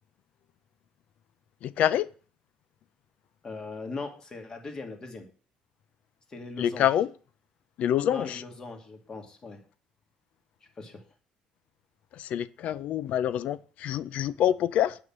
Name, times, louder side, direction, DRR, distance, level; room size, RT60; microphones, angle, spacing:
voice 1, 1.6-2.1 6.6-7.1 7.8-8.4 12.1-15.0, left 11 dB, 55° left, 0.5 m, -26 dB
voice 2, 3.4-5.3 6.3-6.9 8.1-9.6 10.8-11.0, left 3 dB, 25° left, 2.2 m, -39 dB
9.7 x 5.8 x 7.4 m
cardioid pair, 145°, 3 cm